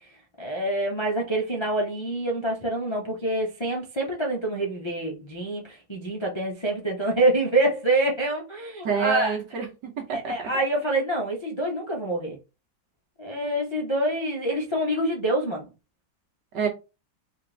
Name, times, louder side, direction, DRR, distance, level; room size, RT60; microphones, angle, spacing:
voice 1, 0.4-9.4 10.1-12.4 13.2-15.7, right 1 dB, 40° left, 0.4 m, -26 dB
voice 2, 8.8-10.3 16.5-16.7, right 5 dB, 75° right, 1.7 m, -27 dB
4.4 x 2.6 x 3.2 m
omnidirectional pair, 1.9 m